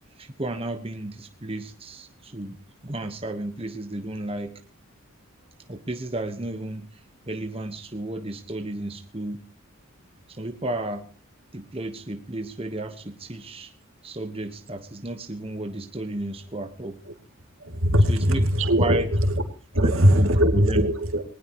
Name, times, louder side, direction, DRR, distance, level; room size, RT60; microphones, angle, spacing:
voice 1, 0.2-2.6 2.8-4.5 5.7-6.9 7.3-9.4 10.3-11.1 11.5-13.7 14.0-17.0 18.1-18.4 18.8-19.1 19.8-20.9, right 1 dB, 25° right, 6 dB, 1.2 m, -32 dB
voice 2, 17.6-19.4 19.7-21.2, equal, 75° right, 6 dB, 2.6 m, -20 dB
20.0 x 19.5 x 3.1 m, 0.37 s
head